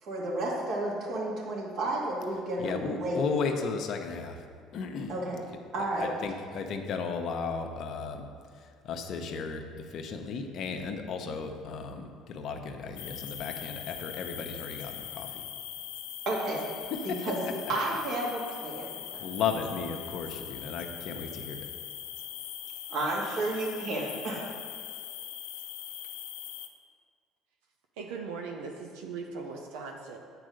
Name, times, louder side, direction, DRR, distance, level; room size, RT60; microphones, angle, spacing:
voice 1, 0.0-3.2 5.1-5.4 5.7-6.1 16.3-16.7 17.0-17.4 17.7-19.2 22.9-24.4, right 1 dB, 65° right, -4 dB, 2.5 m, -32 dB
voice 2, 2.6-4.4 4.7-5.1 6.0-8.3 8.5-15.4 17.1-17.2 17.6-17.7 19.2-21.7, left 5 dB, 60° left, 5 dB, 0.9 m, -35 dB
sound 1, 13.0-26.7, left 10 dB, 90° left, 0.5 m, -41 dB
voice 3, 28.0-30.2, right 4 dB, 85° right, 2 dB, 0.7 m, -39 dB
8.8 x 4.8 x 6.4 m, 2.1 s
supercardioid pair, 80°, 0 cm